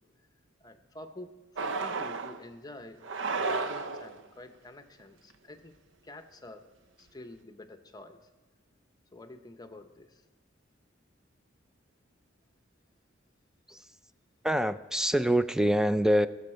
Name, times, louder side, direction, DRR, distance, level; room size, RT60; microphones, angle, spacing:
voice 1, 0.6-3.0 3.4-5.7 6.0-6.7 7.0-8.3 9.1-10.2, left 2 dB, 20° left, 8 dB, 0.8 m, -48 dB
sound 1, 1.6-2.4 3.0-4.2, right 4 dB, 70° right, 0.6 m, -32 dB
voice 2, 14.4-16.3, equal, 5° right, 12 dB, 0.3 m, -25 dB
19.0 x 7.1 x 4.3 m, 1.3 s
head